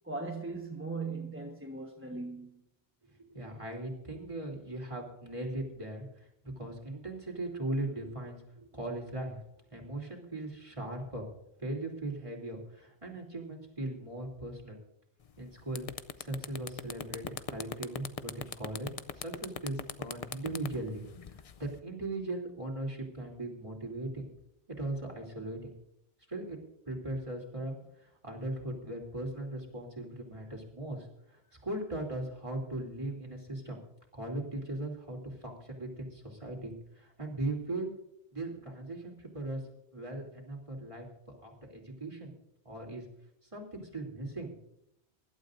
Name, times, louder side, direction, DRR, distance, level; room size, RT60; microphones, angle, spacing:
voice 1, 0.0-2.6, right 3 dB, 10° right, 1.1 m, -39 dB
voice 2, 3.1-9.4 9.7-11.3 11.6-14.8 15.4-15.9 16.2-18.9 19.2-21.1 21.3-24.3 24.7-25.7 26.3-26.6 26.8-33.8 34.1-37.9 38.3-39.6 39.9-41.0 41.4-42.3 42.6-43.0 43.5-44.5, right 2 dB, 25° right, 3.2 m, -39 dB
sound 1, 15.2-15.4 15.7-21.8, left 6 dB, 45° left, 0.5 m, -39 dB
24.0 x 12.0 x 2.6 m
omnidirectional pair, 1.2 m